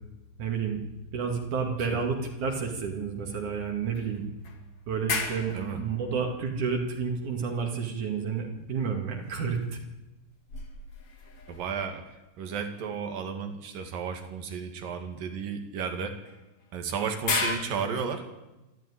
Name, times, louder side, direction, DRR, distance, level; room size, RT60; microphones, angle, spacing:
voice 1, 0.4-0.8 1.1-4.2 4.9-9.8, right 6 dB, 65° right, 2 dB, 3.6 m, -30 dB
sound 1, 1.2-2.5 2.8-2.9 4.0-7.4 9.2-12.3 14.0-14.2 16.3-17.6, left 4 dB, 45° left, 3.3 m, -37 dB
voice 2, 11.5-12.0 12.4-16.2 16.7-18.2, right 6 dB, 85° right, 6 dB, 3.8 m, -33 dB
27.0 x 12.5 x 9.9 m, 1.0 s
omnidirectional pair, 3.8 m